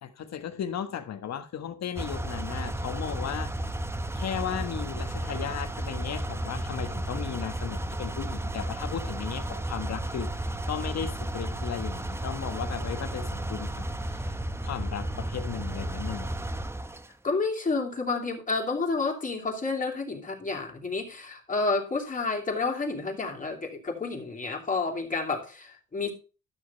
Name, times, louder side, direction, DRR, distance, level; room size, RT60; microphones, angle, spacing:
voice 1, 0.0-3.5 4.1-14.3 14.6-16.4, left 9 dB, 60° left, 1.4 m, -36 dB
sound 1, 2.0-17.1, right 1 dB, 10° right, 0.7 m, -33 dB
voice 2, 17.2-26.1, left 3 dB, 25° left, 3.0 m, -30 dB
12.5 x 6.6 x 4.1 m
cardioid pair, 90°, 30 cm